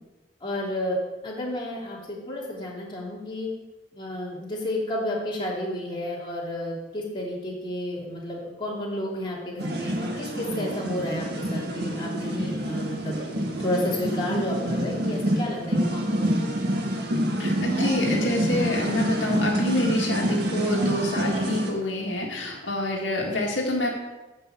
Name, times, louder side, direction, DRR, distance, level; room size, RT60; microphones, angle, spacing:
voice 1, 0.4-1.0 1.2-3.5 3.9-13.2 13.6-17.0, left 1 dB, 25° left, -4 dB, 2.8 m, -31 dB
sound 1, 9.6-21.7, right 1 dB, 60° right, 1.6 m, -27 dB
voice 2, 17.4-23.9, left 1 dB, 85° left, -1 dB, 1.9 m, -27 dB
10.0 x 5.4 x 7.5 m, 1.1 s
head